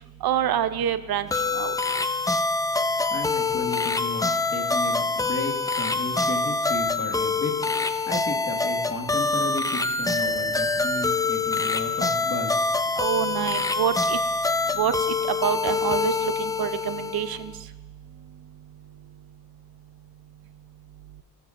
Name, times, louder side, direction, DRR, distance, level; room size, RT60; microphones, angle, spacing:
voice 1, 0.2-1.3 1.5-1.7 13.0-14.2 14.7-14.9 15.4-17.5, right 10 dB, 70° right, 12 dB, 0.7 m, -26 dB
sound 1, 1.3-17.5, left 3 dB, 10° left, 0.4 m, -25 dB
voice 2, 3.1-7.6 8.1-12.7, left 2 dB, 35° left, 2 dB, 1.8 m, -33 dB
18.0 x 7.3 x 2.5 m, 1.4 s
cardioid pair, 70°, 39 cm